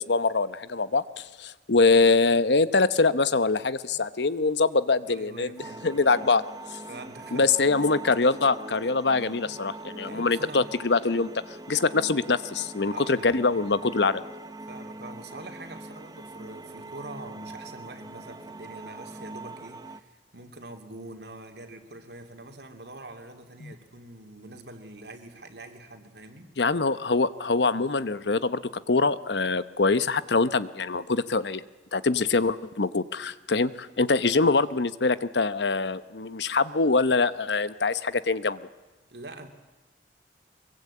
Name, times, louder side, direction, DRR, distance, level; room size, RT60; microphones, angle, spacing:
voice 1, 0.0-5.5 5.8-6.4 7.3-11.3 11.7-14.2 23.6-23.7 26.6-28.6 28.9-31.6 31.9-38.6, left 3 dB, 70° left, 14 dB, 0.9 m, -24 dB
voice 2, 5.1-6.3 6.9-7.6 8.1-8.2 10.0-10.6 12.9-13.3 14.6-26.5 39.1-39.5, right 2 dB, 65° right, 5 dB, 2.9 m, -44 dB
sound 1, 5.6-20.0, right 2 dB, 20° right, 1.0 m, -42 dB
23.0 x 23.0 x 8.6 m, 1.2 s
head